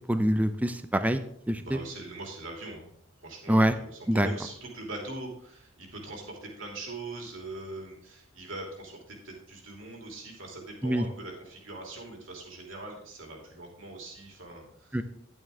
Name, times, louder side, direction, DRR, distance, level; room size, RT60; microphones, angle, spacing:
voice 1, 0.1-1.2 1.5-1.8 3.5-3.7 4.1-4.3 10.8-11.0 14.9-15.0, right 1 dB, 5° right, 9 dB, 0.5 m, -24 dB
voice 2, 1.1-2.9 3.2-15.0, right 2 dB, 65° right, 0 dB, 3.0 m, -42 dB
11.0 x 9.0 x 3.6 m, 0.68 s
head